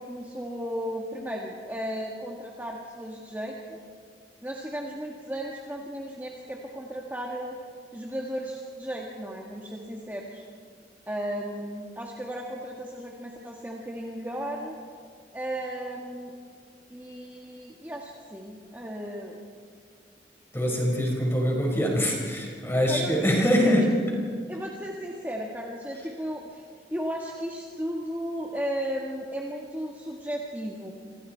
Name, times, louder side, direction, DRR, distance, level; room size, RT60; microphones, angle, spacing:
voice 1, 0.0-3.8 4.4-7.6 7.9-10.4 11.1-14.7 15.3-16.3 16.9-19.4 22.9-23.9 24.5-26.6 26.9-30.9, equal, 10° right, -1 dB, 1.7 m, -35 dB
voice 2, 20.5-23.9, equal, 15° left, -1 dB, 5.4 m, -24 dB
29.0 x 26.5 x 4.6 m, 2.1 s
head